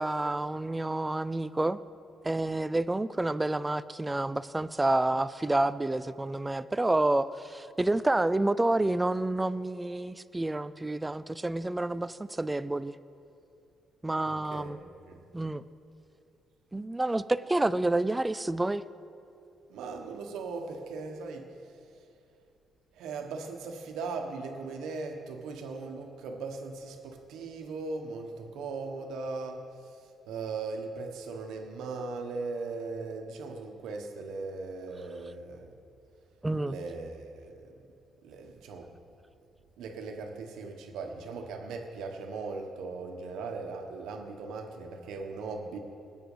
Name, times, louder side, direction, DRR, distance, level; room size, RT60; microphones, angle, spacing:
voice 1, 0.0-1.8 2.2-12.9 14.0-14.8 15.3-15.6 16.7-18.8 36.4-36.8, right 2 dB, 15° right, 15 dB, 0.4 m, -29 dB
voice 2, 14.3-15.2 19.7-21.5 22.9-35.7 36.6-37.7 38.2-38.9 39.8-45.8, right 4 dB, 85° right, 4 dB, 1.4 m, -39 dB
19.5 x 8.0 x 5.0 m, 2.6 s
cardioid pair, 90°, 0 cm